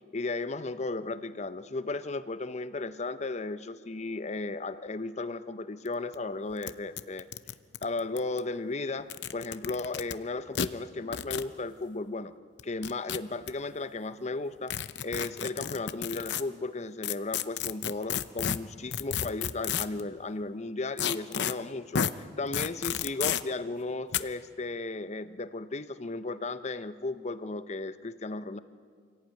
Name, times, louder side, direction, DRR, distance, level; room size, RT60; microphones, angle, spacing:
voice 1, 0.1-7.3 7.8-12.3 12.6-14.8 15.0-28.6, left 3 dB, 40° left, 13 dB, 0.8 m, -35 dB
sound 1, 5.9-6.0 6.1-6.2 6.6-6.7 7.0-8.4 9.0-10.1 10.5-10.7 11.1-11.5 12.6-13.5 14.7-16.4 17.0-20.0 21.0-21.5 21.9-22.1 22.5-23.4 24.1-24.2, left 8 dB, 75° left, 0.7 m, -31 dB
25.5 x 17.0 x 9.1 m, 2.1 s
head